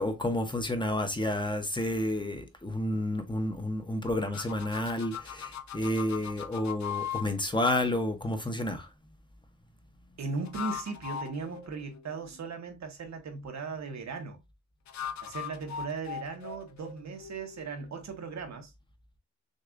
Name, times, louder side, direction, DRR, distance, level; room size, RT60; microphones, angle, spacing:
voice 1, 0.0-8.9, left 1 dB, 15° left, 0.7 m, -30 dB
sound 1, 4.3-7.3 10.3-12.4 14.9-17.7, left 8 dB, 70° left, 0.6 m, -39 dB
voice 2, 10.2-14.4 15.2-18.7, right 4 dB, 65° right, 1.0 m, -38 dB
6.4 x 2.4 x 2.4 m
wide cardioid pair, 115°, 30 cm